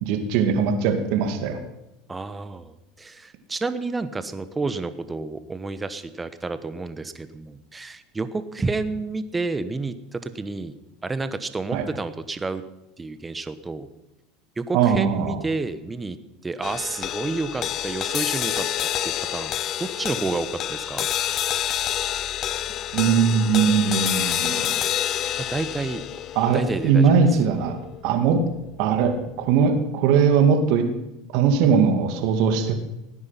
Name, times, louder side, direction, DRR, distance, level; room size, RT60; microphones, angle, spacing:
voice 1, 0.0-1.6 11.7-11.8 14.7-15.4 22.9-24.7 26.4-27.8 28.0-28.4 28.8-30.9 31.3-32.8, right 6 dB, 65° right, 6 dB, 2.3 m, -20 dB
voice 2, 2.1-10.7 11.0-12.6 13.0-13.9 14.6-16.2 16.4-18.7 19.0-21.1 25.4-26.0 26.5-27.1, right 3 dB, 15° right, 12 dB, 1.2 m, -30 dB
sound 1, 16.6-29.1, left 11 dB, 45° left, 0.6 m, -28 dB
18.0 x 9.7 x 5.9 m, 0.90 s
hypercardioid pair, 95°, 0 cm